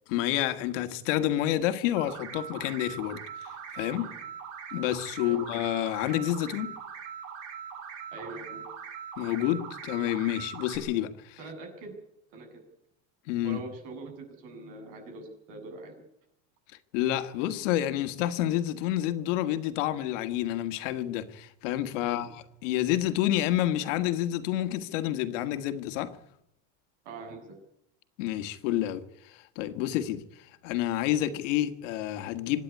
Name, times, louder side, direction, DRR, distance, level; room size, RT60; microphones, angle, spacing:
voice 1, 0.1-4.1 4.7-6.8 9.2-11.4 13.3-13.6 16.9-26.2 28.2-32.6, left 13 dB, 75° left, 1.9 m, -29 dB
sound 1, 2.0-10.8, right 7 dB, 80° right, 6.6 m, -41 dB
voice 2, 8.1-8.7 11.4-12.0 12.3-12.5 13.4-16.0 22.0-22.3 27.0-27.6, right 2 dB, 60° right, 7.6 m, -43 dB
26.0 x 10.5 x 9.6 m
cardioid pair, 180°, 37 cm